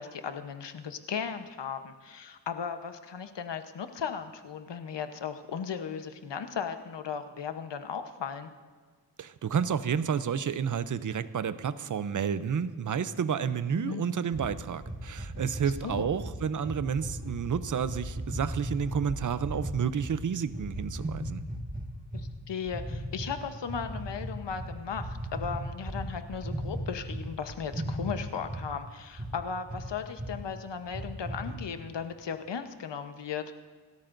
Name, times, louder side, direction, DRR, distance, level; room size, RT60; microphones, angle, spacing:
voice 1, 0.0-8.5 13.4-14.0 15.6-16.1 22.1-33.5, left 6 dB, 75° left, 8 dB, 1.0 m, -36 dB
voice 2, 9.2-21.4, right 7 dB, 45° right, 14 dB, 0.6 m, -30 dB
sound 1, 14.3-20.1 20.5-22.3 22.7-23.3 23.7-27.2 27.5-28.7 29.2-29.3 29.7-29.9 30.2-30.3 30.8-31.5, right 1 dB, 20° right, 1.8 m, -36 dB
27.0 x 13.5 x 2.6 m, 1.5 s
wide cardioid pair, 90°, 43 cm